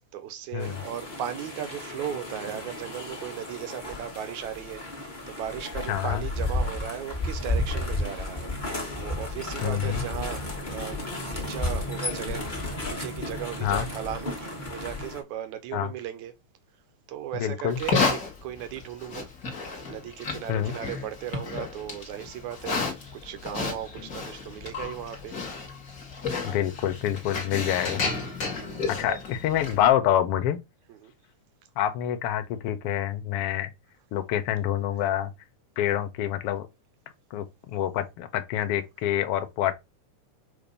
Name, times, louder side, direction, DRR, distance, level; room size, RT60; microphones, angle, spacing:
voice 1, 0.1-16.3 17.1-19.3 19.9-22.8 23.1-25.4 28.5-29.2 30.9-31.1, right 10 dB, 75° right, 2.1 m, -37 dB
sound 1, 0.6-15.2, left 2 dB, 85° left, 0.4 m, -33 dB
voice 2, 5.9-6.2 9.6-10.0 13.6-13.9 15.7-15.9 17.3-17.8 20.5-20.7 26.4-28.1 28.9-30.6 31.8-33.7 34.1-35.3 35.8-36.7 37.3-39.7, left 11 dB, 65° left, 1.5 m, -27 dB
Livestock farm animals working animals, 17.7-29.9, left 4 dB, 35° left, 1.5 m, -32 dB
6.8 x 2.9 x 5.3 m
omnidirectional pair, 3.7 m